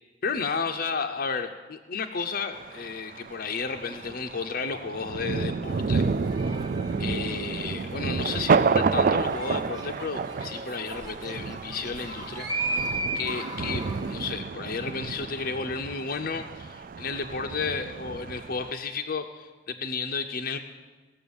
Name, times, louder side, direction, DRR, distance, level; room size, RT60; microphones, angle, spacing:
voice 1, 0.2-6.1 7.0-20.6, left 5 dB, 50° left, 4 dB, 0.6 m, -32 dB
Thunder, 2.5-18.7, right 5 dB, 45° right, 0.3 m, -30 dB
sound 1, 5.6-14.3, right 2 dB, 20° right, 1.0 m, -37 dB
16.5 x 7.1 x 7.1 m, 1.3 s
head